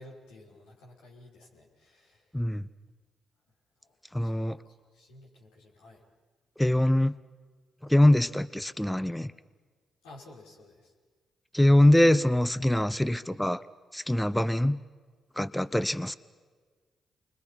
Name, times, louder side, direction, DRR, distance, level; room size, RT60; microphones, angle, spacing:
voice 1, 0.0-2.4 3.8-6.0 10.0-10.9, left 1 dB, 90° left, 5.9 m, -53 dB
voice 2, 2.3-2.7 4.1-4.6 6.6-7.2 7.8-9.3 11.5-13.6 13.9-14.8 15.4-16.2, left 1 dB, 5° left, 0.8 m, -23 dB
28.5 x 23.0 x 5.9 m
supercardioid pair, 50°, 0 cm